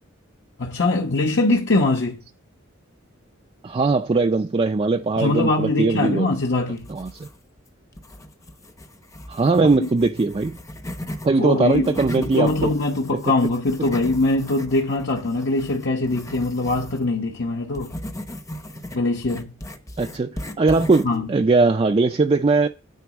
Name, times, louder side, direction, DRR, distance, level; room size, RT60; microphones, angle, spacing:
voice 1, 0.6-2.2 5.2-6.9 9.8-9.9 11.4-17.9 18.9-19.5 21.0-21.3, left 2 dB, 60° left, 1.0 m, -22 dB
voice 2, 3.6-6.3 6.9-7.3 9.3-10.6 11.2-12.7 13.1-13.2 20.0-22.7, right 3 dB, 30° right, 0.4 m, -20 dB
sound 1, 6.8-7.6 7.9-11.3 11.7-17.0 17.7-21.2, equal, 15° left, 0.8 m, -37 dB
9.3 x 3.9 x 7.1 m
head